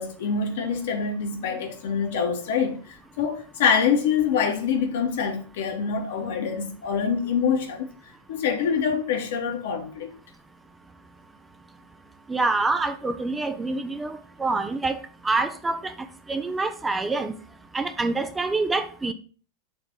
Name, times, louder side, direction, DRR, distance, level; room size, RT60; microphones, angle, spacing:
voice 1, 0.0-7.9 8.3-10.1, left 6 dB, 55° left, 1.3 m, -25 dB
voice 2, 12.3-17.3 17.7-19.1, right 3 dB, 10° right, 0.6 m, -26 dB
6.7 x 3.3 x 5.8 m
figure-of-eight pair, 90°, 0 cm